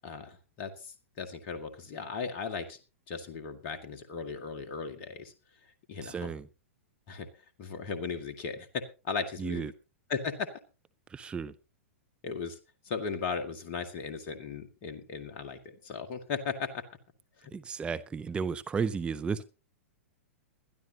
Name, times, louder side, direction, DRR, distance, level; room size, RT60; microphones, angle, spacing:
voice 1, 0.0-2.8 3.1-5.3 5.9-6.3 7.1-7.3 7.6-8.7 9.0-9.7 10.1-10.5 12.2-12.6 12.8-16.8 17.4-17.5, left 5 dB, 40° left, 5 dB, 1.9 m, -37 dB
voice 2, 6.0-6.5 9.4-9.7 11.1-11.5 17.5-19.4, right 5 dB, 15° right, 13 dB, 0.7 m, -33 dB
21.0 x 12.5 x 2.9 m, 0.31 s
figure-of-eight pair, 105°, 7 cm